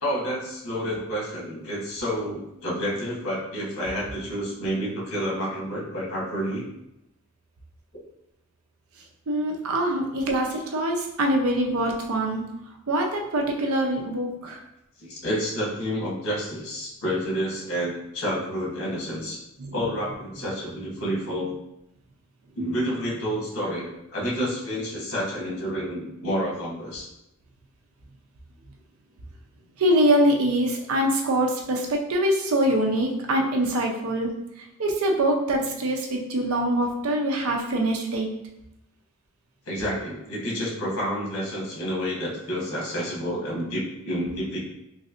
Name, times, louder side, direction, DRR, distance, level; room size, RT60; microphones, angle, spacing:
voice 1, 0.0-6.7 15.0-19.4 19.7-21.5 22.5-27.1 39.7-44.6, equal, 90° left, -4 dB, 1.2 m, -29 dB
voice 2, 9.3-12.4 12.9-14.6 19.6-19.7 29.8-34.3 34.6-38.3, right 1 dB, 85° right, 1 dB, 0.6 m, -24 dB
3.1 x 2.6 x 2.5 m, 0.86 s
head